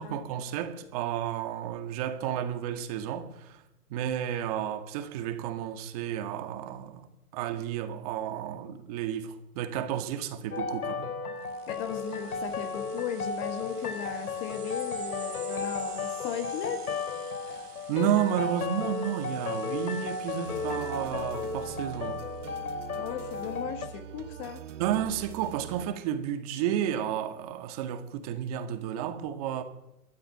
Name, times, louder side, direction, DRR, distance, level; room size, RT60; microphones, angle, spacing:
voice 1, 0.0-3.6 3.9-7.1 7.3-11.1 17.9-22.2 24.8-29.6, right 10 dB, 25° right, 1.8 m, -32 dB
sound 1, 10.5-23.9, left 4 dB, 70° left, 4.0 m, -34 dB
sound 2, 11.4-22.5, right 7 dB, 85° right, 3.0 m, -50 dB
voice 2, 11.7-16.8 17.5-17.7 23.0-24.6, left 9 dB, 20° left, 1.4 m, -37 dB
sound 3, 20.4-25.9, right 10 dB, 55° right, 0.9 m, -43 dB
24.5 x 13.5 x 9.2 m
hypercardioid pair, 165°, 45 cm